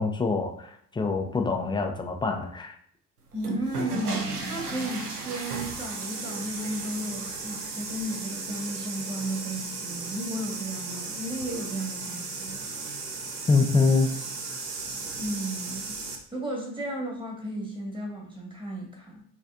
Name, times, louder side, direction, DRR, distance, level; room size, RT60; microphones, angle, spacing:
voice 1, 0.0-2.8 13.5-14.1, left 4 dB, 10° left, 4 dB, 0.5 m, -25 dB
voice 2, 3.3-12.7 15.2-16.0 16.3-19.2, right 1 dB, 10° right, -1 dB, 1.5 m, -34 dB
sound 1, 3.3-16.2, right 3 dB, 90° right, 0.6 m, -35 dB
4.9 x 3.3 x 2.5 m, 0.62 s
figure-of-eight pair, 55°, 44 cm